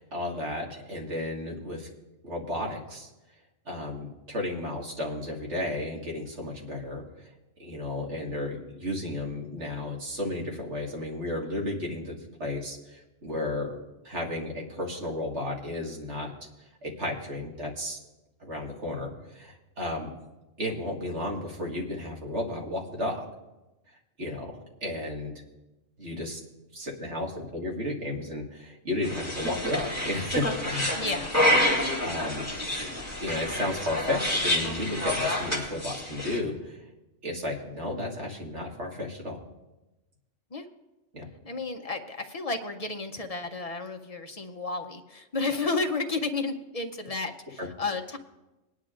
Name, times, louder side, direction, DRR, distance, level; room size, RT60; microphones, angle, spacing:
voice 1, 0.0-1.9 2.2-3.1 3.7-7.3 7.6-13.8 14.0-16.3 16.8-18.0 18.4-20.1 20.6-23.2 24.2-24.5 24.8-25.4 26.0-26.4 26.7-31.0 32.0-32.5 33.2-36.8 37.2-39.4 41.1-41.3 47.6-47.7, left 1 dB, 60° right, -1 dB, 2.2 m, -33 dB
sound 1, 29.0-36.4, left 1 dB, 10° right, 2.1 m, -28 dB
voice 2, 30.9-31.3 40.5-40.7 41.4-48.2, left 3 dB, 40° left, 5 dB, 0.5 m, -32 dB
21.5 x 10.0 x 2.5 m, 1.0 s
omnidirectional pair, 1.3 m